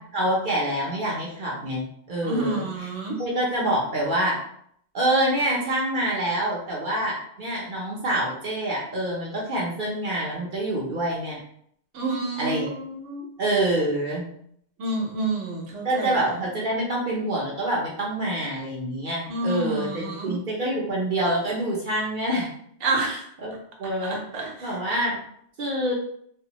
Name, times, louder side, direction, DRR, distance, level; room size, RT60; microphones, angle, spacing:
voice 1, 0.1-2.6 3.2-4.4 4.9-11.4 12.4-12.7 13.4-14.3 15.8-22.5 23.1-23.5 23.8-25.2 25.6-25.9, right 1 dB, 50° right, -4 dB, 0.7 m, -26 dB
voice 2, 2.2-3.2 11.9-13.3 14.8-16.4 19.3-20.3 22.8-23.3 24.0-24.8, right 2 dB, 75° right, 0 dB, 1.1 m, -29 dB
3.3 x 2.0 x 2.8 m, 0.67 s
omnidirectional pair, 1.3 m